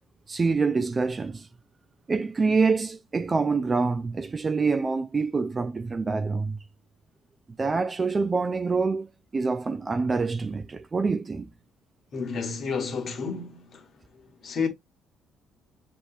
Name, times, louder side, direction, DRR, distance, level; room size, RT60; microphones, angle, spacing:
voice 1, 0.3-1.5 2.1-6.6 7.6-9.1 9.3-11.5, right 4 dB, 25° right, 0.4 m, -26 dB
voice 2, 12.1-13.8 14.4-14.7, left 5 dB, 45° left, 1.6 m, -30 dB
6.4 x 3.0 x 2.5 m
cardioid pair, 130°, 0 cm